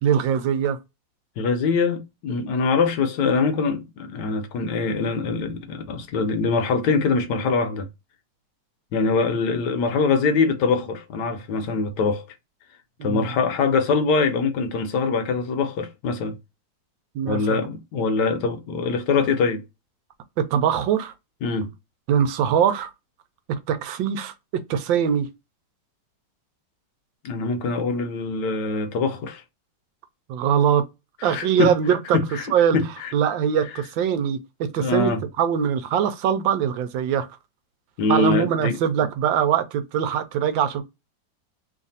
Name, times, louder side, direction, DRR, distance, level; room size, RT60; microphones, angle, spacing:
voice 1, 0.0-0.8 13.0-13.3 17.1-17.6 20.4-21.1 22.1-22.9 23.7-24.3 24.7-25.3 30.3-30.8 31.2-32.2 32.5-32.8 33.1-35.1 35.4-37.3 38.1-40.8, right 8 dB, 85° right, 1.4 m, -22 dB
voice 2, 1.4-7.9 8.9-12.2 13.0-16.4 17.3-19.6 21.4-21.7 27.2-29.4 31.2-31.8 32.1-33.1 34.8-35.2 38.0-38.8, left 4 dB, 70° left, 1.2 m, -23 dB
3.2 x 2.5 x 4.0 m
omnidirectional pair, 2.1 m